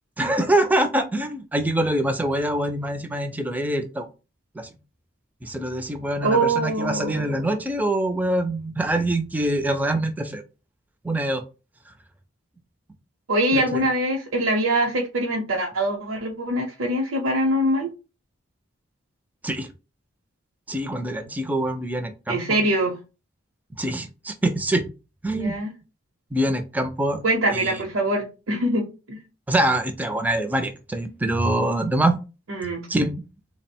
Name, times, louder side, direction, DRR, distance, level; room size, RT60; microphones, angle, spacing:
voice 1, 0.2-4.1 4.6-4.7 5.4-10.4 11.0-11.4 13.5-13.8 19.4-19.7 20.7-22.6 23.7-24.8 25.2-25.6 26.3-27.2 27.5-27.8 29.5-32.2 32.9-33.1, right 1 dB, 10° right, 0.3 m, -24 dB
voice 2, 6.2-7.2 13.3-17.9 22.3-22.9 25.3-25.7 27.2-29.2 32.5-32.9, right 1 dB, 80° right, 0.7 m, -23 dB
3.6 x 2.0 x 4.2 m
head